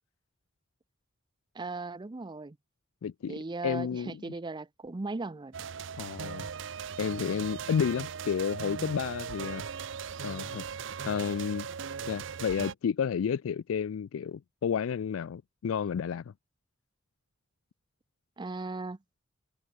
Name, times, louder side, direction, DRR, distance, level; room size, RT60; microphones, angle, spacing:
voice 1, 1.5-2.6 3.3-5.6 18.4-19.0, right 3 dB, 20° right, 0.5 m, -37 dB
voice 2, 3.0-4.2 6.0-6.5 7.0-9.6 10.2-10.6 11.0-11.7 12.1-16.2, left 7 dB, 90° left, 0.4 m, -31 dB
sound 1, 5.5-12.7, right 6 dB, 65° right, 0.6 m, -38 dB
head